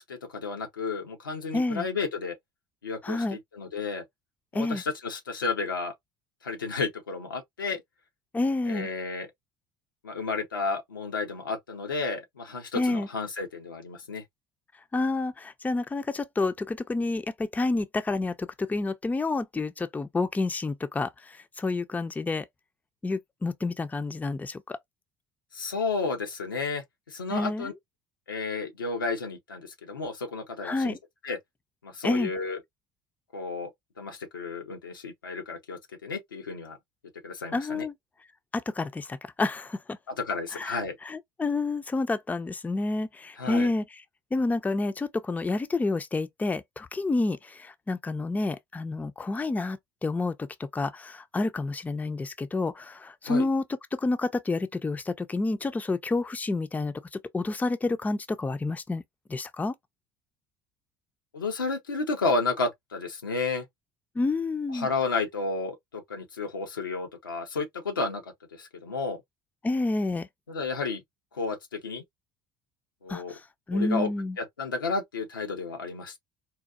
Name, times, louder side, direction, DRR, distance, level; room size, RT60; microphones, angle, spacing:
voice 1, 0.0-2.3 2.8-4.0 4.5-5.9 6.4-7.8 8.7-9.3 10.0-14.2 25.5-27.7 28.3-31.0 31.2-31.4 31.8-32.6 33.3-33.7 34.0-36.8 37.2-37.8 40.1-41.0 43.4-43.7 53.2-53.5 61.3-63.6 64.7-69.2 70.5-71.0 71.3-72.0 73.0-73.3 73.7-74.1 74.4-76.2, left 4 dB, 90° left, 0.8 m, -32 dB
voice 2, 1.5-1.9 3.0-3.4 4.5-4.8 8.3-8.9 12.7-13.1 14.9-22.5 23.0-24.8 27.3-27.7 30.6-31.0 32.0-32.3 37.5-37.9 38.5-40.0 40.5-44.0 44.3-53.6 53.9-59.0 59.3-59.8 64.1-64.9 69.6-70.3 73.1-74.4, left 3 dB, 15° left, 0.5 m, -29 dB
4.0 x 2.3 x 2.3 m
hypercardioid pair, 65°, 11 cm